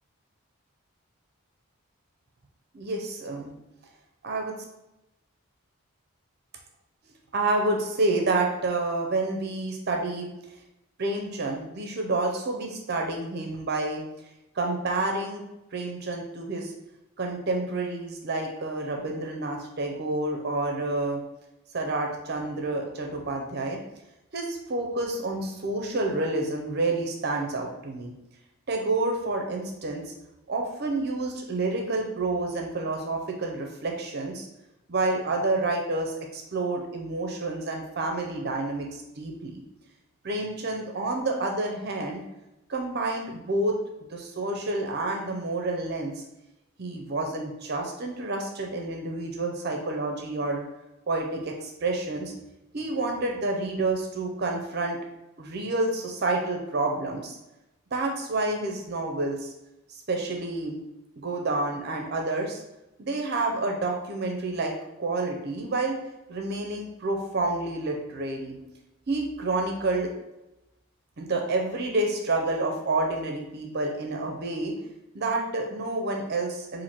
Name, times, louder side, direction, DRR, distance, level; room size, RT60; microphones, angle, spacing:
voice 1, 2.7-3.5 4.2-4.5 7.3-10.3 11.0-14.0 14.6-15.4 15.7-16.7 17.2-21.2 21.7-23.8 24.3-28.1 28.7-30.1 30.5-34.5 34.9-39.6 40.2-42.2 42.7-43.8 44.1-46.2 46.8-50.6 51.1-52.3 52.7-55.0 55.4-57.4 57.9-59.5 59.9-60.8 61.2-62.6 63.0-65.9 66.3-68.6 69.1-70.1 71.2-74.7 75.1-76.8, right 2 dB, 45° right, 2 dB, 0.5 m, -29 dB
4.4 x 2.5 x 4.3 m, 0.96 s
head